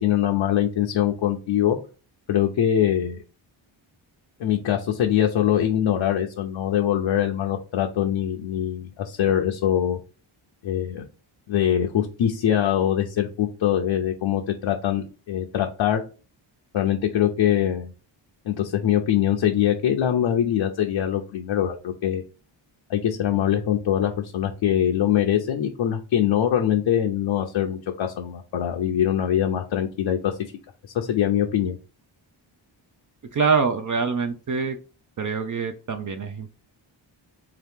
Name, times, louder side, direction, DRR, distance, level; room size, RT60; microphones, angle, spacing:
voice 1, 0.0-1.8 2.3-3.2 4.4-10.0 10.6-11.0 11.5-16.0 16.7-17.9 18.5-22.2 22.9-30.3 30.9-31.8, left 10 dB, 70° left, 2 dB, 0.6 m, -23 dB
voice 2, 33.3-34.8 35.2-36.5, right 5 dB, 40° right, 6 dB, 0.5 m, -25 dB
3.6 x 2.9 x 3.4 m, 0.34 s
wide cardioid pair, 110°, 47 cm